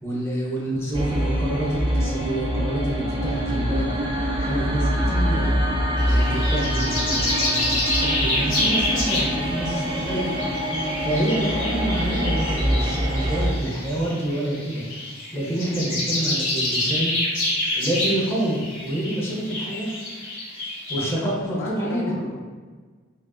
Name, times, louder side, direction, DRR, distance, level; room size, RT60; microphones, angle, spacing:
voice 1, 0.0-3.9 4.4-5.5 6.0-10.4 11.0-14.8 15.3-17.1 17.7-20.0 20.9-22.1, right 1 dB, 15° left, -6 dB, 0.9 m, -27 dB
sound 1, 0.9-13.5, equal, 25° right, 0.5 m, -25 dB
sound 2, 6.0-21.1, left 1 dB, 45° left, 1.5 m, -28 dB
voice 2, 20.9-22.4, left 2 dB, 65° left, -2 dB, 0.5 m, -34 dB
5.1 x 2.5 x 2.4 m, 1.5 s
head